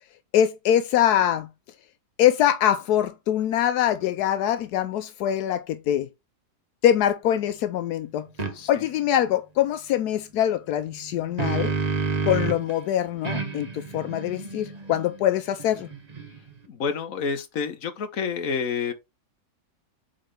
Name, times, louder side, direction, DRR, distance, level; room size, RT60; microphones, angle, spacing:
voice 1, 0.3-1.5 2.2-6.1 6.8-8.3 8.7-11.7 12.3-15.9, left 11 dB, 85° left, 1.1 m, -23 dB
sound 1, 8.4-8.5 10.9-12.7 13.2-16.6, right 5 dB, 30° right, 0.9 m, -30 dB
voice 2, 8.5-8.9 16.7-18.9, left 6 dB, 60° left, 1.4 m, -29 dB
8.4 x 3.9 x 3.3 m
omnidirectional pair, 1.7 m